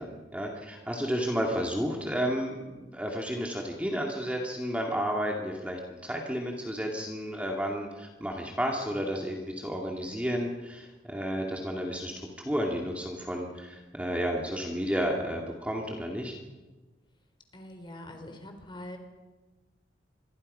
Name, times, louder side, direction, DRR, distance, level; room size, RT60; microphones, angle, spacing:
voice 1, 0.0-16.4, equal, 5° right, 0 dB, 2.2 m, -32 dB
voice 2, 17.5-19.0, left 1 dB, 25° left, 5 dB, 3.8 m, -43 dB
27.5 x 22.5 x 5.6 m, 1.2 s
head